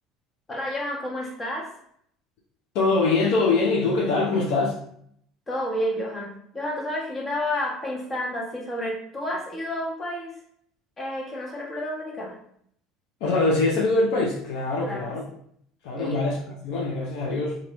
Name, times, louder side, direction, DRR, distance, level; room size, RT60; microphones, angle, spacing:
voice 1, 0.5-1.7 5.5-10.3 11.0-12.3 14.8-15.1 16.0-16.2, left 1 dB, 25° left, -2 dB, 1.1 m, -30 dB
voice 2, 2.7-4.8 13.2-15.2 15.8-16.4 16.6-17.6, left 3 dB, 70° left, -2 dB, 0.7 m, -23 dB
3.0 x 2.5 x 3.1 m, 0.67 s
hypercardioid pair, 75°, 0 cm